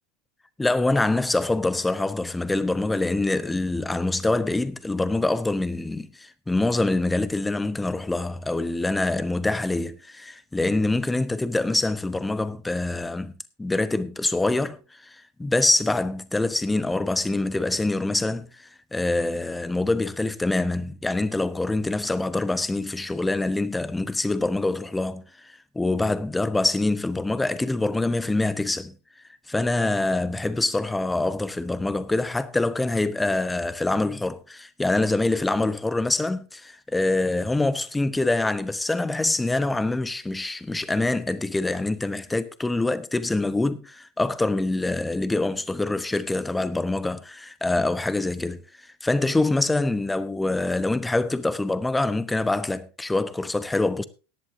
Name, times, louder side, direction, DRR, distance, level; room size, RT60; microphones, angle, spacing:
voice 1, 0.6-13.3 13.6-28.9 29.5-48.6 49.0-54.0, left 2 dB, 10° left, 0.9 m, -25 dB
17.5 x 11.0 x 2.7 m
figure-of-eight pair, 80°, 0 cm